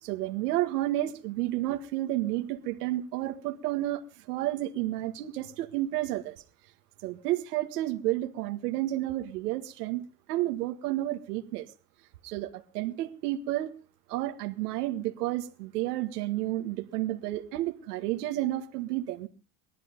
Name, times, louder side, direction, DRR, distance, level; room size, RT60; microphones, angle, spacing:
voice 1, 0.0-6.4 7.0-11.7 12.2-13.7 14.1-19.3, right 15 dB, 90° right, 1.8 m, -31 dB
19.0 x 13.0 x 5.2 m
cardioid pair, 175°, 45 cm